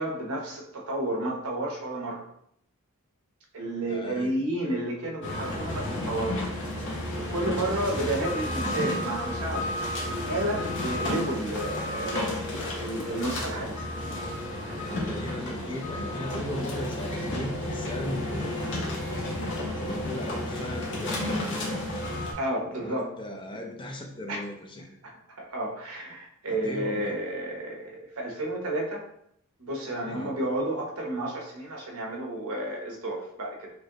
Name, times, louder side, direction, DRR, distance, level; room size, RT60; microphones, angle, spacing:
voice 1, 0.0-2.2 3.5-6.4 7.1-9.7 10.0-13.9 14.7-14.9 22.4-23.1 24.3-24.4 25.0-29.0 29.6-33.7, right 1 dB, 75° right, 0 dB, 1.0 m, -31 dB
voice 2, 3.9-4.3 14.8-19.0 19.8-21.8 22.7-24.9 26.5-27.2 30.0-30.4, left 1 dB, 20° left, 2 dB, 0.5 m, -37 dB
sound 1, 5.2-22.3, left 1 dB, 55° left, 1.0 m, -32 dB
4.9 x 2.6 x 2.9 m, 0.72 s
head